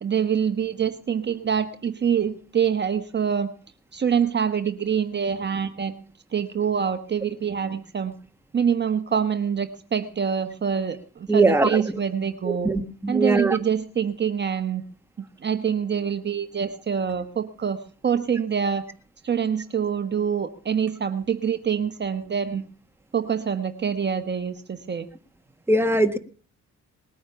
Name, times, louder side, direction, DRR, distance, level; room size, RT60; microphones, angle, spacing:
voice 1, 0.0-3.5 3.9-5.9 6.3-8.1 8.5-12.7 13.1-14.9 15.4-18.8 19.2-22.6 23.1-25.1, right 7 dB, 35° right, 8 dB, 1.2 m, -25 dB
voice 2, 11.3-11.8 12.4-13.6 25.7-26.2, right 2 dB, 10° right, 6 dB, 1.6 m, -21 dB
20.0 x 9.4 x 6.9 m, 0.42 s
cardioid pair, 90°, 30 cm